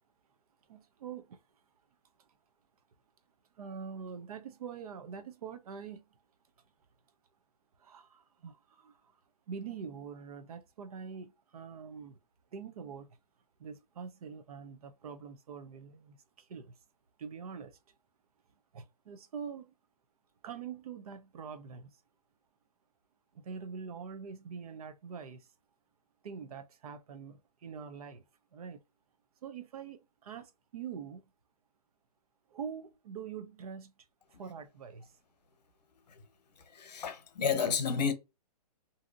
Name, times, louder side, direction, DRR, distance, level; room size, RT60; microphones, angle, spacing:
voice 1, 0.7-1.4 2.2-2.3 3.5-6.2 7.8-9.2 9.5-12.2 12.5-13.1 13.6-16.8 17.2-17.8 18.7-19.7 20.4-22.0 23.3-25.5 26.2-28.2 28.5-28.8 29.4-31.2 32.5-34.1 34.4-35.1, right 6 dB, 65° right, 0.6 m, -44 dB
voice 2, 36.7-38.1, left 6 dB, 85° left, 0.9 m, -31 dB
2.7 x 2.7 x 2.4 m
hypercardioid pair, 155°, 21 cm